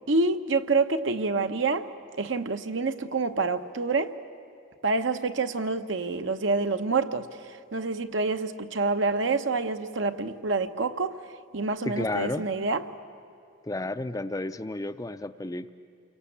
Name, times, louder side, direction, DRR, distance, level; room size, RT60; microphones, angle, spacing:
voice 1, 0.1-1.9 2.2-4.2 4.8-7.3 7.7-11.2 11.5-12.8, right 3 dB, 65° right, 8 dB, 1.0 m, -27 dB
voice 2, 11.8-12.5 13.6-15.7, left 2 dB, 15° left, 10 dB, 0.5 m, -32 dB
29.0 x 23.5 x 8.6 m, 2.6 s
head